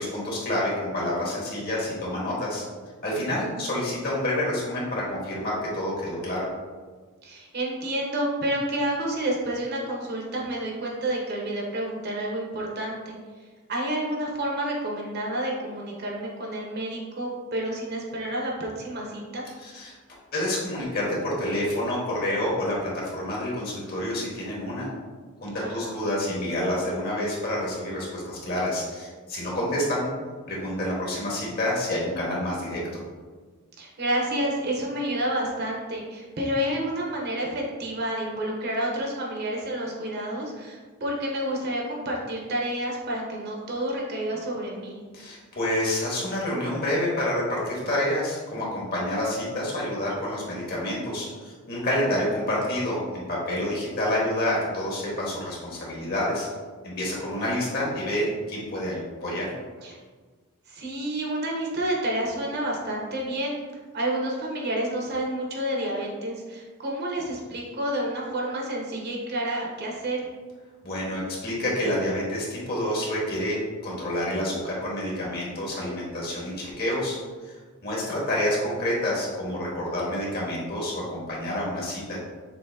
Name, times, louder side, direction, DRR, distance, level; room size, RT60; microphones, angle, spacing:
voice 1, 0.0-2.6 3.0-6.5 19.6-19.9 20.3-24.9 25.4-30.1 30.5-32.8 45.1-56.5 56.8-59.5 70.8-73.6 73.8-77.2 77.4-77.6 77.8-82.2, left 1 dB, 45° left, -4 dB, 1.5 m, -28 dB
voice 2, 7.2-13.2 13.7-19.4 25.6-26.0 33.8-45.0 59.8-60.0 60.7-63.6 63.9-70.3, right 1 dB, 50° right, -2 dB, 0.9 m, -29 dB
6.8 x 2.8 x 2.7 m, 1.4 s
head